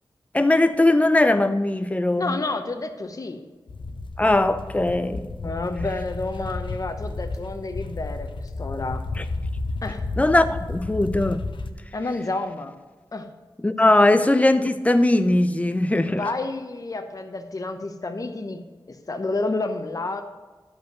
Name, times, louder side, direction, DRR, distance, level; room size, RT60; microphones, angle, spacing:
voice 1, 0.3-2.4 4.2-5.3 9.2-9.3 10.2-11.5 13.6-16.2, left 2 dB, 15° left, 0.6 m, -20 dB
voice 2, 2.2-3.4 5.4-9.0 9.8-10.0 11.9-12.7 13.1-13.3 16.1-20.2, left 2 dB, 40° left, 0.9 m, -30 dB
sound 1, 3.7-11.7, left 3 dB, 65° left, 0.8 m, -32 dB
11.5 x 5.4 x 6.6 m
wide cardioid pair, 100°, 9 cm